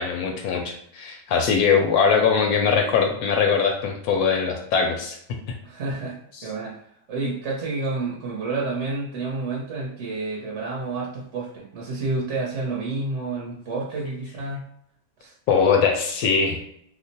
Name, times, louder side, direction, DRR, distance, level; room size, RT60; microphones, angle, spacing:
voice 1, 0.0-5.2 15.5-16.7, left 6 dB, 75° left, 3 dB, 1.0 m, -21 dB
voice 2, 5.6-6.8 7.1-14.6 15.2-15.3, right 3 dB, 55° right, -3 dB, 0.9 m, -29 dB
2.9 x 2.1 x 4.0 m, 0.70 s
omnidirectional pair, 1.8 m